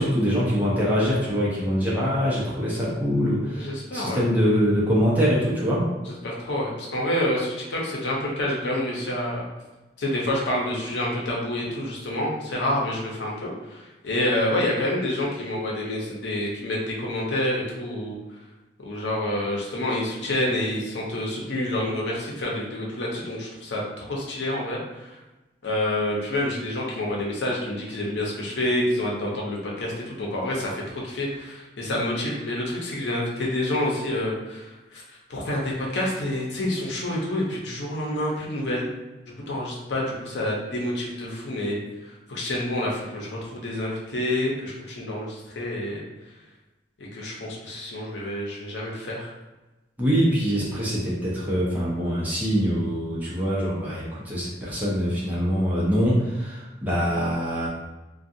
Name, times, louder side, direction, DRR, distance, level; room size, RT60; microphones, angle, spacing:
voice 1, 0.0-5.9 50.0-57.7, equal, 10° right, -7 dB, 0.6 m, -24 dB
voice 2, 3.6-4.3 6.0-9.4 10.0-18.2 18.8-25.2 25.6-35.0 35.3-38.9 39.5-41.8 42.0-46.0 47.0-49.3, left 1 dB, 90° left, -4 dB, 0.7 m, -28 dB
2.5 x 2.3 x 2.6 m, 1.1 s
head